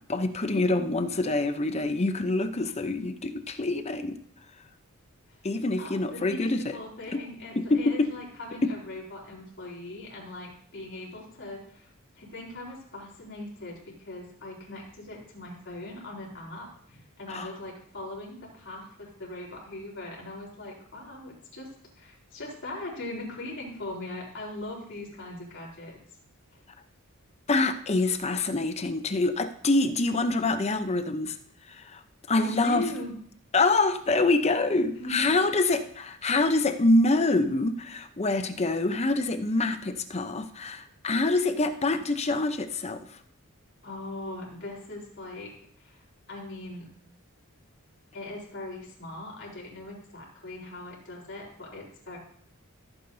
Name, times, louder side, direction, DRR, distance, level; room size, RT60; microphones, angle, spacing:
voice 1, 0.1-4.2 5.4-6.6 7.1-7.2 7.7-8.1 8.6-8.7 17.3-17.5 27.5-31.3 31.7-32.0 32.3-32.8 33.5-43.0, left 2 dB, 30° left, 9 dB, 0.7 m, -25 dB
voice 2, 5.8-26.0 32.4-33.2 34.9-35.4 43.8-46.9 48.1-52.2, left 1 dB, 55° left, -3 dB, 3.9 m, -40 dB
15.0 x 8.6 x 2.7 m, 0.63 s
head